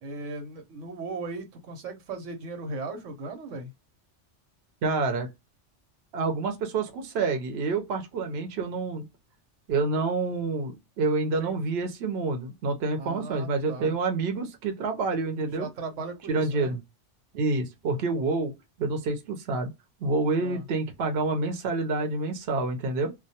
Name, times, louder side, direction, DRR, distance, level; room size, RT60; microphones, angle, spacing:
voice 1, 0.0-3.7 11.4-11.6 13.0-14.0 15.4-16.7 20.4-20.7, right 3 dB, 85° right, 1.1 m, -37 dB
voice 2, 4.8-5.3 6.1-9.0 9.7-15.7 16.3-16.8 17.3-18.5 18.8-19.7 20.0-23.1, right 3 dB, 60° right, 0.9 m, -28 dB
2.2 x 2.2 x 2.7 m
omnidirectional pair, 1.2 m